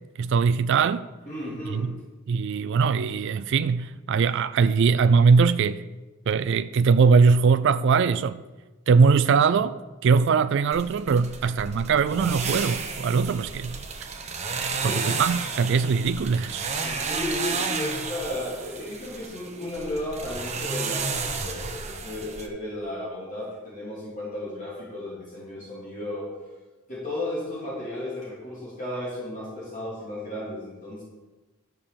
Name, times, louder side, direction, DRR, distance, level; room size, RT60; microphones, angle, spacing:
voice 1, 0.2-1.0 1.7-2.0 2.3-5.8 6.3-8.4 8.9-13.8 14.6-16.7, right 5 dB, 55° right, 0.3 m, -21 dB
voice 2, 1.3-1.9 14.7-15.1 16.8-26.3 26.9-31.0, left 1 dB, 35° left, 3.3 m, -34 dB
sound 1, 10.7-22.5, right 4 dB, 30° right, 0.9 m, -32 dB
12.0 x 5.2 x 7.1 m
head